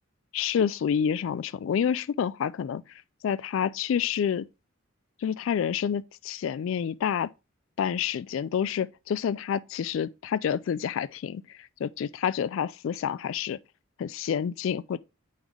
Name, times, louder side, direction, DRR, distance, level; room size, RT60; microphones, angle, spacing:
voice 1, 0.3-4.5 5.2-7.3 7.8-13.6 14.0-15.0, left 8 dB, 70° left, 0.3 m, -28 dB
9.0 x 3.3 x 3.5 m
head